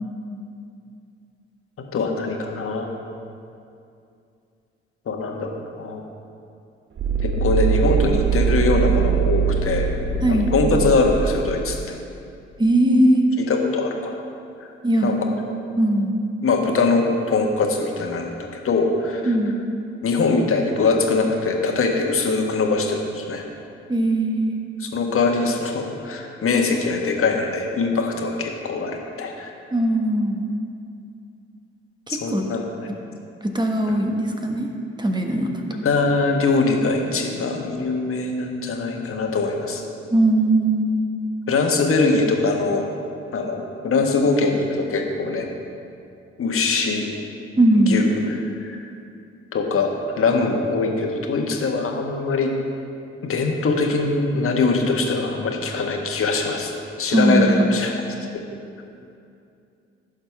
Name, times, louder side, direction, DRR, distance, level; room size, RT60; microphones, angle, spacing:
voice 1, 1.8-2.9 5.1-6.0 7.2-9.9 10.3-11.9 13.4-14.2 15.0-15.3 16.4-19.4 20.0-23.4 24.8-29.5 32.1-32.7 33.9-34.0 35.7-39.8 41.5-42.9 43.3-45.5 46.4-47.1 47.7-48.8 49.5-52.5 53.2-56.7 57.0-58.0, left 3 dB, 45° left, 2 dB, 1.5 m, -22 dB
sound 1, 7.0-11.9, right 7 dB, 40° right, 0.8 m, -22 dB
voice 2, 12.6-13.3 14.8-15.1 15.8-16.1 19.2-19.6 23.9-24.6 29.7-30.4 32.3-32.4 33.4-34.7 35.0-35.5 40.1-41.0 47.6-48.0 57.1-57.7, right 1 dB, 15° right, 3 dB, 1.4 m, -19 dB
16.0 x 6.5 x 3.5 m, 2.5 s
figure-of-eight pair, 40°, 31 cm